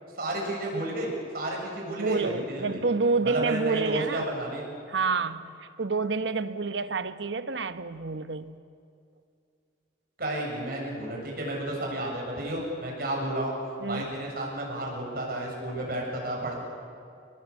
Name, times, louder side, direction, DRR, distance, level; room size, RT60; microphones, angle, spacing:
voice 1, 0.1-2.8 3.2-4.6 10.2-13.5 13.9-16.6, right 1 dB, 55° right, 7.2 m, -32 dB
voice 2, 2.0-4.3 4.9-8.6 13.8-14.1, right 4 dB, 80° right, 1.1 m, -28 dB
30.0 x 21.0 x 8.3 m
head